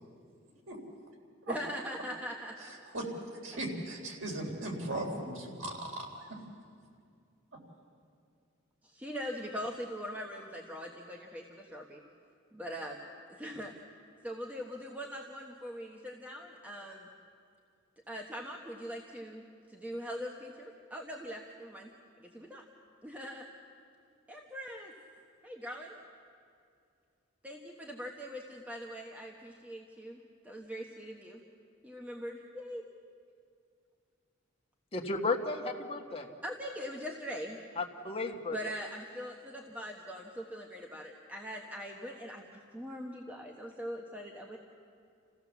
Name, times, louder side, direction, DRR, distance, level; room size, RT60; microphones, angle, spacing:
voice 1, 1.5-2.7 3.5-3.6 8.8-12.0 12.5-13.0 13.3-13.7 14.2-17.1 18.1-21.9 22.2-22.6 23.0-23.5 24.3-24.9 25.4-26.0 27.4-31.4 31.8-32.9 36.4-37.6 38.5-44.6, equal, 10° right, 0 dB, 1.2 m, -42 dB
voice 2, 3.4-6.4, right 1 dB, 85° right, 0 dB, 3.7 m, -37 dB
voice 3, 34.9-36.3 37.8-38.6, left 3 dB, 30° left, 1 dB, 1.6 m, -34 dB
28.0 x 15.5 x 7.2 m, 2.4 s
head